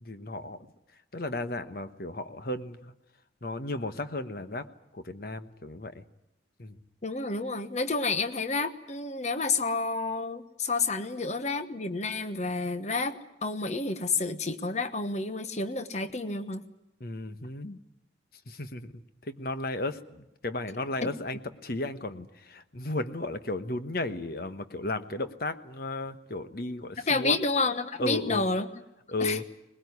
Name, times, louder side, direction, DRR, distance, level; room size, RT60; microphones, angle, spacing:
voice 1, 0.0-0.7 1.1-2.9 3.4-4.7 4.9-6.0 6.6-6.8 17.0-17.8 18.5-27.4 28.0-28.4 29.1-29.5, left 2 dB, 55° left, 10 dB, 1.2 m, -34 dB
voice 2, 7.0-16.6 21.0-21.1 27.1-28.7 29.2-29.4, left 3 dB, 40° left, 10 dB, 1.2 m, -30 dB
21.0 x 20.5 x 9.6 m, 0.88 s
head